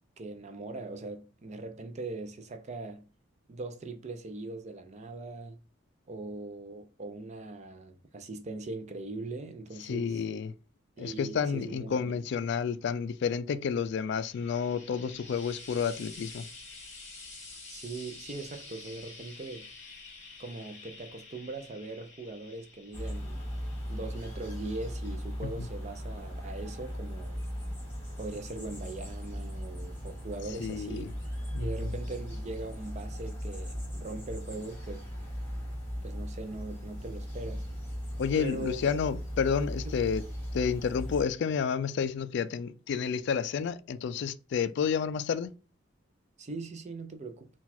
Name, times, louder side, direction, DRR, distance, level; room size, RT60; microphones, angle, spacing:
voice 1, 0.2-3.0 3.5-5.6 6.1-10.2 11.0-12.2 17.7-19.7 20.4-23.4 23.9-27.4 28.2-31.1 31.6-35.1 36.0-37.6 38.4-38.9 39.8-39.9 46.4-47.5, right 2 dB, 35° right, 0.4 m, -40 dB
voice 2, 9.8-10.5 11.0-16.4 30.6-31.1 31.5-31.7 38.2-40.2 40.5-45.5, left 6 dB, 60° left, 0.3 m, -30 dB
Frying (food), 13.9-27.3 28.3-28.4, left 3 dB, 35° left, 1.5 m, -50 dB
sound 1, 22.9-41.3, equal, 10° left, 1.8 m, -38 dB
4.0 x 2.3 x 4.2 m
head